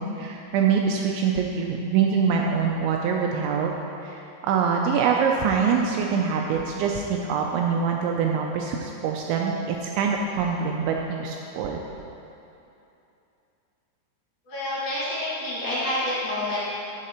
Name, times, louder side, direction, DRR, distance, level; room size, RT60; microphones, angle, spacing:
voice 1, 0.0-3.7 4.0-11.8, right 6 dB, 85° right, 1 dB, 2.6 m, -24 dB
voice 2, 14.5-16.6, left 1 dB, 50° left, -9 dB, 2.8 m, -28 dB
13.0 x 6.4 x 4.4 m, 2.8 s
omnidirectional pair, 5.8 m